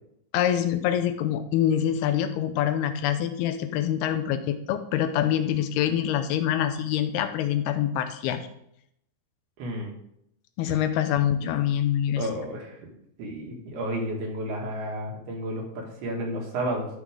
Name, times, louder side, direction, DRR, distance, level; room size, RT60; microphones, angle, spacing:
voice 1, 0.3-8.5 10.6-12.2, left 10 dB, 90° left, 9 dB, 2.7 m, -25 dB
voice 2, 9.6-9.9 10.7-10.8 12.2-12.9 13.2-16.9, right 1 dB, 80° right, -1 dB, 4.0 m, -32 dB
13.0 x 6.1 x 3.7 m, 0.75 s
omnidirectional pair, 4.5 m